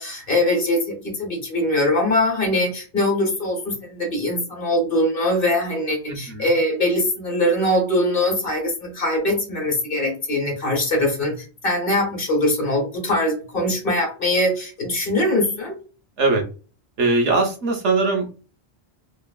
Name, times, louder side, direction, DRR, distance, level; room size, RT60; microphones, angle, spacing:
voice 1, 0.0-15.8, left 1 dB, 50° left, -1 dB, 1.4 m, -22 dB
voice 2, 6.1-6.5 16.2-16.4 17.0-18.3, right 3 dB, 85° right, 3 dB, 1.1 m, -21 dB
3.0 x 2.4 x 2.3 m, 0.35 s
omnidirectional pair, 1.2 m